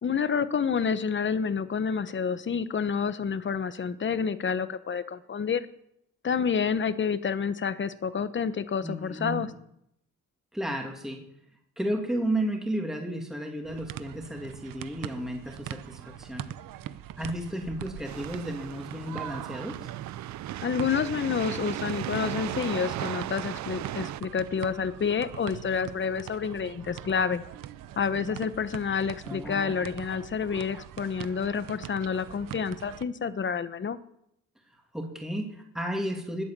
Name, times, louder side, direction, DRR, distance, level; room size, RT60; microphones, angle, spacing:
voice 1, 0.0-5.7 6.2-9.5 20.6-27.4 28.0-34.0, left 6 dB, 35° left, 13 dB, 1.1 m, -29 dB
voice 2, 8.8-9.5 10.5-11.2 11.8-16.5 17.2-19.9 29.2-29.8 34.9-36.4, right 1 dB, ahead, 2 dB, 2.6 m, -33 dB
sound 1, 13.6-33.0, right 12 dB, 80° right, 0.8 m, -42 dB
sound 2, 18.0-24.2, right 14 dB, 60° right, 0.5 m, -36 dB
20.5 x 8.5 x 7.6 m, 0.76 s
cardioid pair, 115°, 33 cm